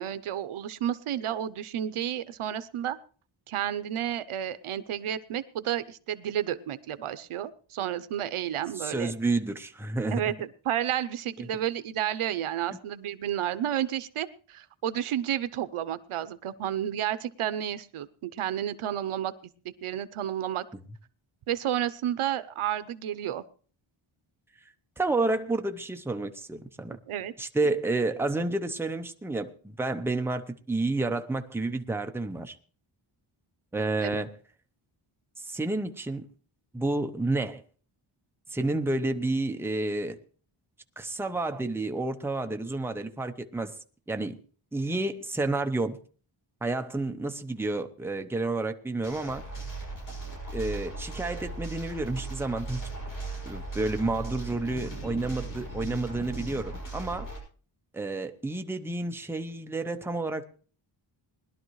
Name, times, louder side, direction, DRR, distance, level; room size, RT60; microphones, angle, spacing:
voice 1, 0.0-3.0 3.5-9.1 10.1-19.3 19.8-20.6 21.5-23.4 27.1-27.3 34.0-34.2, right 11 dB, 80° right, 0.8 m, -31 dB
voice 2, 8.8-10.2 11.4-11.5 25.0-27.0 27.4-32.6 33.7-34.3 35.4-36.3 36.7-37.6 38.5-40.2 41.0-43.7 44.1-44.4 44.7-46.0 46.6-49.4 50.5-52.8 53.4-57.3 57.9-60.4, right 2 dB, 5° right, 0.7 m, -30 dB
sound 1, 49.0-57.4, right 2 dB, 40° left, 6.9 m, -37 dB
20.5 x 11.5 x 3.1 m
wide cardioid pair, 150°, 49 cm